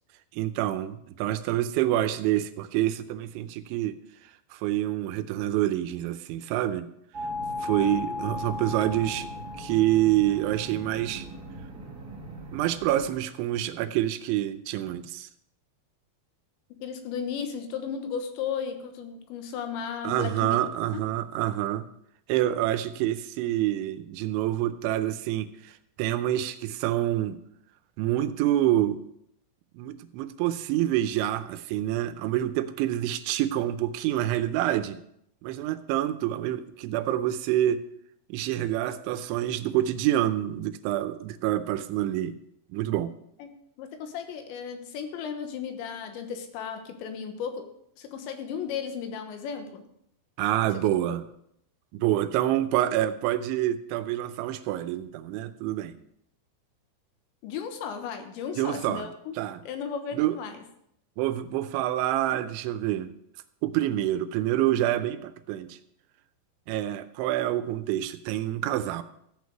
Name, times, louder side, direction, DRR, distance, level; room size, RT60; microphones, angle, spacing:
voice 1, 0.3-4.0 4.5-6.9 7.6-9.3 9.6-11.2 12.5-15.3 20.0-21.9 22.3-27.4 28.0-29.0 29.7-35.0 35.4-37.8 38.3-42.3 42.7-43.1 50.4-51.2 51.9-55.9 58.6-59.1 59.4-59.6 60.1-60.4 61.2-63.1 63.6-65.8 66.7-69.0, right 13 dB, 85° right, 11 dB, 3.1 m, -27 dB
sound 1, 7.1-13.1, left 1 dB, 40° right, 1.3 m, -37 dB
voice 2, 7.8-8.2 8.6-8.7 16.8-20.6 20.9-21.0 43.4-47.7 48.0-49.8 50.8-51.2 57.4-59.3 59.6-60.6, left 7 dB, 80° left, 6 dB, 3.4 m, -35 dB
14.5 x 8.5 x 4.6 m, 0.74 s
omnidirectional pair, 5.3 m